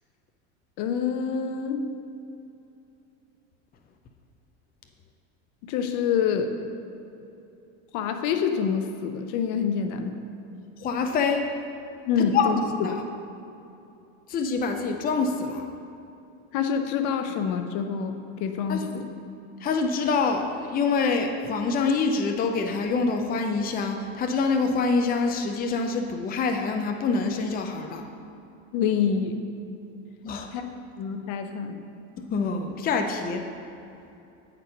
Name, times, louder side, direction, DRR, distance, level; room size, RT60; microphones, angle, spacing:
voice 1, 0.8-1.9 5.7-6.5 7.9-10.2 12.1-12.9 16.5-19.1 28.7-29.4 30.5-30.6 31.0-31.8, left 7 dB, 60° left, 6 dB, 0.8 m, -26 dB
voice 2, 10.8-11.5 12.3-12.5 12.8-13.0 14.3-15.6 18.7-18.8 19.6-28.0 30.2-30.5 32.2-33.4, left 4 dB, 25° left, 4 dB, 0.6 m, -25 dB
9.0 x 4.5 x 5.2 m, 2.8 s
supercardioid pair, 110°, 34 cm